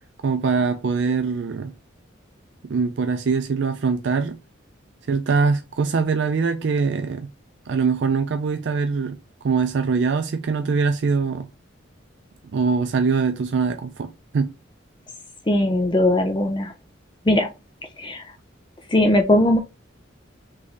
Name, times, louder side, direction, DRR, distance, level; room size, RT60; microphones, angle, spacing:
voice 1, 0.2-1.7 2.6-4.4 5.1-7.3 7.7-11.5 12.5-14.5, right 5 dB, 60° right, 0.4 m, -23 dB
voice 2, 15.5-16.7 17.2-17.5 18.0-18.3 18.9-19.6, left 1 dB, 25° left, 0.5 m, -19 dB
3.4 x 3.2 x 3.9 m
head